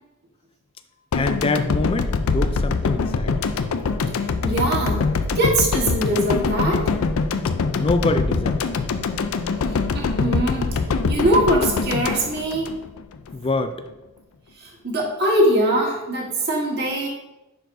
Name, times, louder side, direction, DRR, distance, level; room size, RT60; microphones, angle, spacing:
sound 1, 1.1-13.3, left 4 dB, 90° left, 0.4 m, -23 dB
voice 1, 1.1-3.5 7.8-8.6 13.3-13.8, left 2 dB, 25° left, 9 dB, 0.3 m, -25 dB
voice 2, 4.4-5.1 5.3-6.9 9.9-12.7 14.6-17.1, right 1 dB, 50° right, -1 dB, 1.5 m, -22 dB
10.0 x 4.7 x 2.6 m, 1.0 s
head